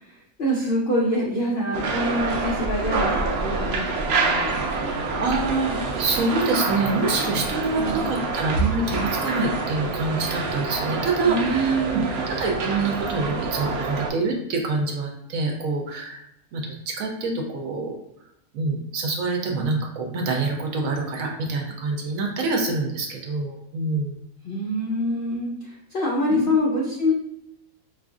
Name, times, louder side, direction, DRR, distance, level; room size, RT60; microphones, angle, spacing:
voice 1, 0.1-5.3 7.8-8.2 11.2-12.1 24.4-27.1, equal, 75° left, -4 dB, 0.5 m, -26 dB
sound 1, 1.7-14.1, right 3 dB, 90° right, 0.5 m, -27 dB
voice 2, 5.2-12.0 12.4-16.2 16.5-17.9 18.5-24.2 26.3-26.5, right 3 dB, 70° right, 1 dB, 0.9 m, -26 dB
4.7 x 2.4 x 2.4 m, 0.79 s
omnidirectional pair, 1.7 m